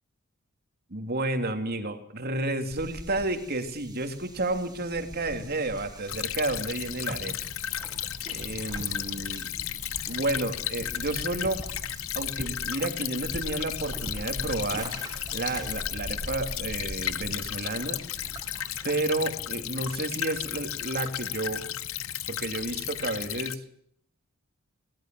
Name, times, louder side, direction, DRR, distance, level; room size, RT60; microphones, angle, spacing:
voice 1, 0.9-7.4 8.2-9.5 10.1-11.6 12.1-14.9 15.3-18.0 18.8-21.6 22.3-23.6, right 2 dB, 45° right, 6 dB, 2.9 m, -31 dB
sound 1, 2.7-19.0, right 1 dB, 20° right, 2.3 m, -42 dB
Stream / Trickle dribble, 6.1-23.6, left 11 dB, 65° left, 1.0 m, -34 dB
21.0 x 19.0 x 7.7 m, 0.67 s
head